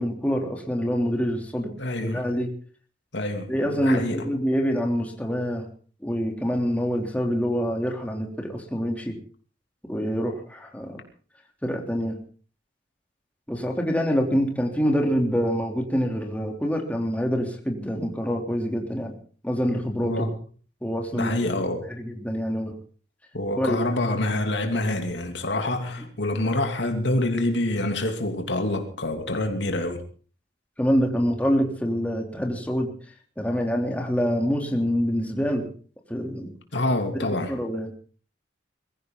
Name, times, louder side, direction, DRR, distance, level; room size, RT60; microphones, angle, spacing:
voice 1, 0.0-1.7 2.0-2.5 3.5-5.7 6.0-9.2 9.9-11.0 11.6-12.2 13.5-19.1 19.4-20.3 20.8-21.4 21.9-22.7 23.6-23.8 30.8-32.9 33.4-35.7 36.1-36.5 37.1-37.9, equal, 10° left, 3.2 m, -26 dB
voice 2, 1.8-2.3 3.1-4.2 20.0-20.3 21.1-21.9 23.3-30.0 36.7-37.5, left 1 dB, 75° left, 3.0 m, -26 dB
22.0 x 15.0 x 3.9 m
head